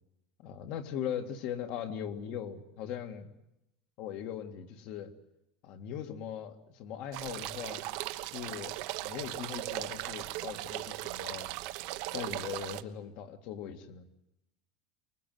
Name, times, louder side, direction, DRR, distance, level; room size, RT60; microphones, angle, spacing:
voice 1, 0.4-3.3 4.0-5.1 5.6-7.9 8.2-8.8 9.0-11.5 12.1-14.0, left 9 dB, 50° left, 8 dB, 2.0 m, -40 dB
sound 1, 7.1-12.8, right 18 dB, 60° right, 1.1 m, -38 dB
24.5 x 21.0 x 9.4 m, 0.86 s
cardioid pair, 170°, 2 cm